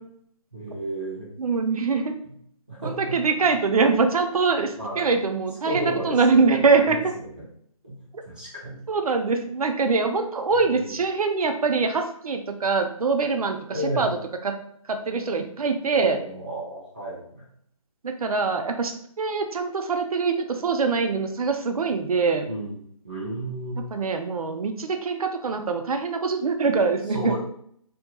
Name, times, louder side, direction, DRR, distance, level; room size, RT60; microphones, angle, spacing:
voice 1, 0.5-1.3 2.7-3.2 4.8-5.1 5.6-7.5 7.8-8.8 10.6-11.0 13.7-14.2 15.9-17.5 22.4-22.8 23.0-23.8 27.1-27.4, right 1 dB, 15° right, -9 dB, 0.5 m, -33 dB
voice 2, 1.4-2.1 2.8-7.0 8.9-13.6 14.0-14.1 14.4-14.5 14.9-16.2 18.0-18.9 19.2-22.5 23.9-27.4, right 4 dB, 85° right, 5 dB, 0.5 m, -23 dB
2.7 x 2.6 x 2.2 m, 0.66 s
hypercardioid pair, 180°, 18 cm